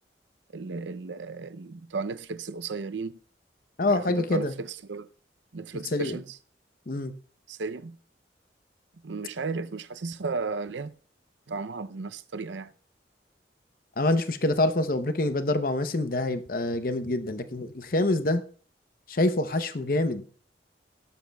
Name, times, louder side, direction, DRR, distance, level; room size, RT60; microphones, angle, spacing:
voice 1, 0.5-3.2 3.9-4.5 4.9-5.1 5.5-6.2 7.5-8.0 9.0-10.9 11.5-12.7, right 4 dB, 90° right, 0.6 m, -34 dB
voice 2, 3.8-4.5 5.9-6.2 6.9-7.1 14.0-18.4 19.1-20.3, left 2 dB, 50° left, 0.8 m, -26 dB
17.0 x 11.5 x 2.3 m
head